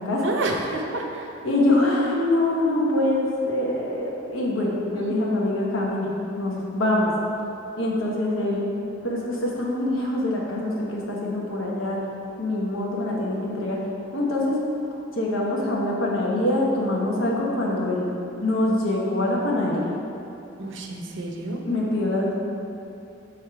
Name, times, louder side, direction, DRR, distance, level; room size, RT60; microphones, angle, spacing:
voice 1, 0.2-1.3 4.9-5.2 20.6-21.6, right 2 dB, 60° right, 1 dB, 0.6 m, -29 dB
voice 2, 1.4-6.1 6.4-7.1 7.8-8.6 9.0-12.0 12.4-13.8 14.1-14.6 15.2-18.1 18.4-19.9 21.6-22.4, left 1 dB, 85° left, -3 dB, 1.1 m, -24 dB
6.1 x 3.6 x 4.6 m, 2.8 s
head